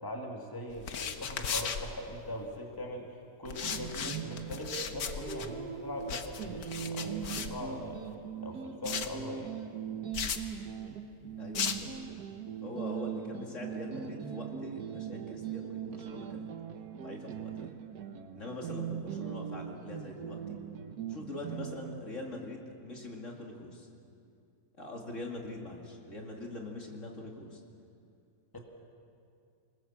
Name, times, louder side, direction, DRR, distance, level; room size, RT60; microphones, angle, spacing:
voice 1, 0.0-3.1 3.4-8.0 8.4-9.6 28.5-28.6, left 1 dB, 15° left, 1 dB, 2.3 m, -41 dB
sound 1, 0.7-2.6 3.4-8.1 8.8-9.2 10.1-10.5 11.5-12.0, left 6 dB, 75° left, 1.6 m, -37 dB
sound 2, 3.6-22.0, right 8 dB, 80° right, 1.7 m, -40 dB
voice 2, 11.4-12.1 12.6-16.4 17.0-17.7 18.3-20.6 21.1-23.9 24.8-27.6, left 2 dB, 50° left, 0 dB, 2.7 m, -43 dB
27.0 x 19.5 x 7.4 m, 2.5 s
omnidirectional pair, 1.6 m